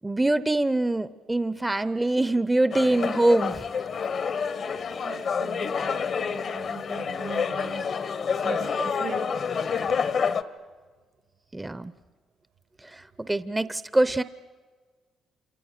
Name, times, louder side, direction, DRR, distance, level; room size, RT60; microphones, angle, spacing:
voice 1, 0.0-3.6 11.5-11.9 12.8-14.2, right 2 dB, 15° right, 0.7 m, -24 dB
sound 1, 2.7-10.4, left 6 dB, 55° left, 1.1 m, -28 dB
voice 2, 5.0-7.9 8.3-9.5, right 6 dB, 70° right, 1.4 m, -39 dB
28.0 x 27.5 x 6.7 m
cardioid pair, 90°, 0 cm